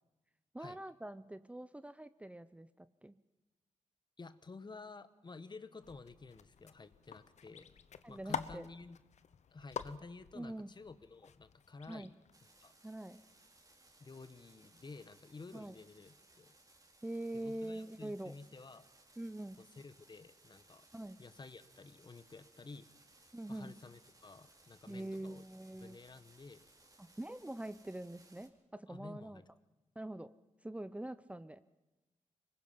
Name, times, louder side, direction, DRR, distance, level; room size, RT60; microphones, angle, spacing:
voice 1, 0.5-3.2 8.0-8.7 10.3-10.7 11.9-12.1 12.8-13.2 15.5-15.7 17.0-18.3 19.2-19.6 20.9-21.2 23.3-23.8 24.9-26.0 27.0-29.4 30.0-30.3 30.6-31.6, right 1 dB, 10° right, 14 dB, 0.6 m, -44 dB
voice 2, 4.2-7.7 8.1-9.0 9.5-12.2 12.6-12.7 14.0-16.5 17.3-18.9 19.6-20.9 21.2-22.9 23.5-25.4 25.8-26.6 28.9-29.5, left 3 dB, 35° left, 13 dB, 1.2 m, -52 dB
sound 1, 5.8-12.4, left 7 dB, 70° left, 0.9 m, -47 dB
sound 2, 12.3-28.5, right 2 dB, 30° right, 3.6 m, -65 dB
24.5 x 20.5 x 5.7 m, 1.1 s
cardioid pair, 70°, 12 cm